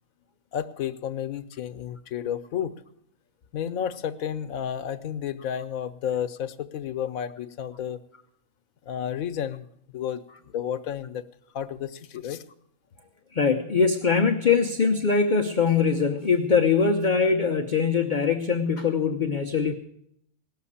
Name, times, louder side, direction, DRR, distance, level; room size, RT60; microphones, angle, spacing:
voice 1, 0.5-2.7 3.5-8.0 8.9-9.7 9.9-10.2 10.5-11.2 11.5-12.4, left 9 dB, 90° left, 13 dB, 1.2 m, -31 dB
voice 2, 13.3-19.7, left 5 dB, 45° left, 6 dB, 0.7 m, -22 dB
18.0 x 6.7 x 8.5 m, 0.74 s
omnidirectional pair, 1.4 m